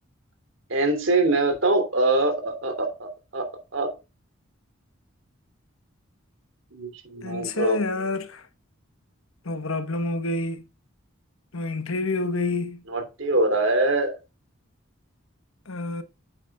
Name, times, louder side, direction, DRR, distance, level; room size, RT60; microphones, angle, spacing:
voice 1, 0.7-3.5 3.7-3.9 6.7-8.1 12.9-14.1, right 2 dB, 70° right, 3.2 m, -24 dB
voice 2, 7.2-8.4 9.4-10.6 11.5-12.8 15.7-16.0, left 2 dB, 85° left, 1.1 m, -28 dB
9.2 x 8.3 x 2.4 m
head